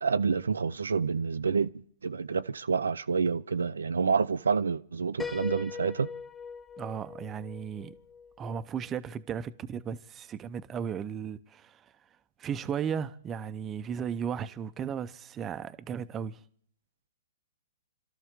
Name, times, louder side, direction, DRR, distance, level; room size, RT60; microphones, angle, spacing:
voice 1, 0.0-6.1, right 5 dB, 80° right, 0.6 m, -28 dB
Piano, 5.2-8.9, left 5 dB, 10° left, 0.6 m, -41 dB
voice 2, 6.8-8.0 8.4-11.9 12.4-16.4, right 7 dB, 20° right, 0.8 m, -35 dB
26.5 x 13.0 x 3.7 m
hypercardioid pair, 125°, 0 cm